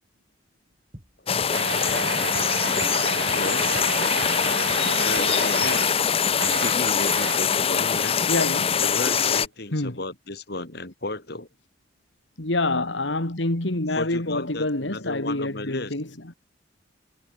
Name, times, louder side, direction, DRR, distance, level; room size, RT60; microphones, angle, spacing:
sound 1, 0.9-1.6 1.9-2.1 2.3-3.5 3.7-4.9 5.2-5.7, equal, 30° right, 6.4 m, -43 dB
sound 2, 1.3-9.5, left 7 dB, 30° left, 0.7 m, -23 dB
sound 3, 1.5-6.1 6.3-7.6 8.8-8.9 9.2-9.3, right 5 dB, 85° right, 2.1 m, -32 dB
voice 1, 3.3-3.7 5.0-5.9 6.4-8.3 8.8-11.5 13.9-15.9, left 2 dB, 60° left, 3.8 m, -34 dB
voice 2, 8.3-8.8 9.7-10.0 12.4-16.3, left 2 dB, 80° left, 2.8 m, -27 dB
head